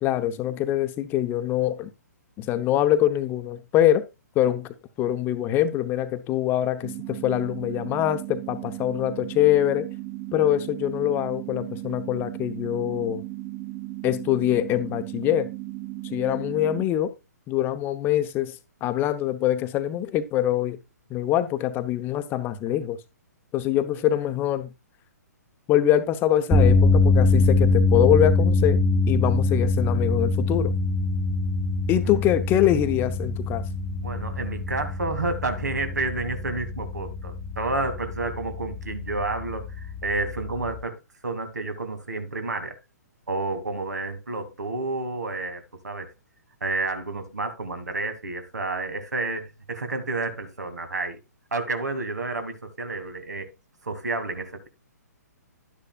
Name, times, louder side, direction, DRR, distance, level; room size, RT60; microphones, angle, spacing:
voice 1, 0.0-1.9 2.4-4.0 4.4-9.9 10.3-13.2 14.0-15.5 16.0-17.1 17.5-20.8 21.1-23.0 23.5-24.7 25.7-28.8 29.1-30.7 31.9-33.6, left 12 dB, 20° left, 0.8 m, -24 dB
sound 1, 6.8-16.8, right 16 dB, 20° right, 0.5 m, -36 dB
sound 2, 26.5-40.8, left 3 dB, 5° left, 1.1 m, -23 dB
voice 2, 34.0-39.7 40.0-42.7 43.3-46.1 46.6-49.4 49.7-51.2 51.5-53.5 53.8-54.7, right 3 dB, 75° right, 2.3 m, -30 dB
11.5 x 9.8 x 2.3 m
figure-of-eight pair, 125°, 9 cm